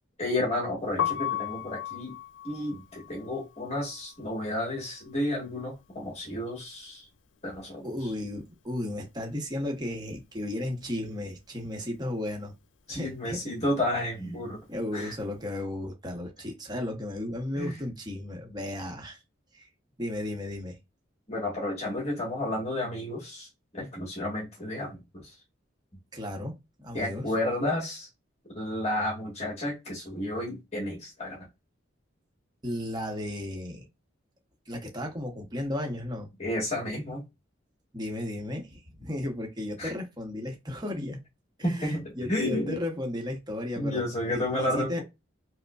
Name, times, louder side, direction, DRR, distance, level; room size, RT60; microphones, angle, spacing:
voice 1, 0.2-2.1 2.4-7.1 7.4-8.1 12.9-14.6 14.9-15.1 17.6-17.8 21.3-23.5 23.7-25.3 26.9-28.1 28.5-31.5 36.4-37.2 39.8-39.9 41.6-42.8 43.7-45.0, left 1 dB, 35° left, 1.4 m, -31 dB
Piano, 0.9-6.8 7.1-8.7 8.9-15.4, left 11 dB, 70° left, 0.4 m, -38 dB
voice 2, 7.8-12.5 12.9-13.4 14.7-19.2 19.5-19.7 20.0-20.8 26.1-27.3 32.6-33.8 34.7-36.3 37.9-41.2 41.6-45.0, left 1 dB, 20° right, 0.8 m, -34 dB
4.9 x 2.0 x 2.3 m
head